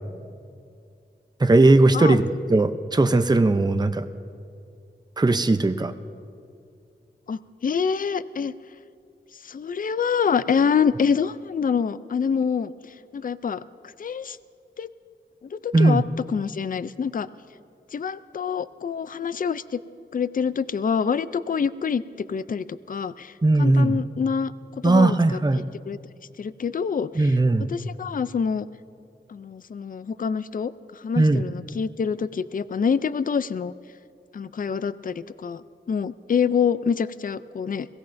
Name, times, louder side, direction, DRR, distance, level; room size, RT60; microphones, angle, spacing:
voice 1, 1.4-4.1 5.2-5.9 15.7-16.1 23.4-24.0 24.8-25.7 27.2-27.7 31.2-31.4, right 2 dB, 20° right, 9 dB, 0.5 m, -18 dB
voice 2, 7.3-8.5 9.4-12.7 13.1-13.6 14.0-14.4 14.8-14.9 15.5-16.0 16.3-17.3 17.9-19.8 20.1-22.0 22.3-24.5 24.8-25.1 25.9-26.0 26.4-27.4 27.7-28.7 29.3-33.7 34.3-37.9, left 6 dB, 45° left, 16 dB, 0.4 m, -26 dB
22.0 x 16.5 x 2.6 m, 2.4 s
wide cardioid pair, 70°, 20 cm